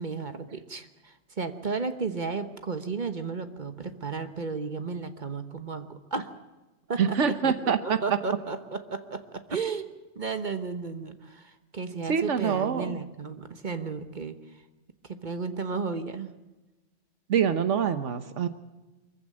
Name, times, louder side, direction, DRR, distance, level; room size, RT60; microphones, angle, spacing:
voice 1, 0.0-6.3 6.9-14.6 15.0-16.4, right 4 dB, 40° right, 9 dB, 1.2 m, -34 dB
voice 2, 7.0-8.0 12.1-13.0 17.3-18.5, right 7 dB, 85° right, 11 dB, 1.3 m, -25 dB
23.5 x 15.0 x 8.7 m, 1.1 s
omnidirectional pair, 1.2 m